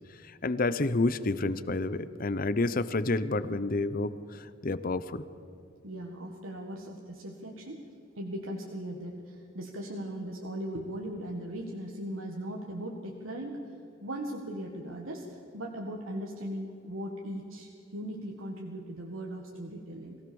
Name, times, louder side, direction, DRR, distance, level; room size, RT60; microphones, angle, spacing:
voice 1, 0.2-5.2, left 2 dB, 45° left, 15 dB, 0.8 m, -29 dB
voice 2, 5.8-7.8 8.2-13.6 14.0-20.2, right 1 dB, 90° right, 0 dB, 1.8 m, -38 dB
22.5 x 16.5 x 7.1 m, 2.8 s
head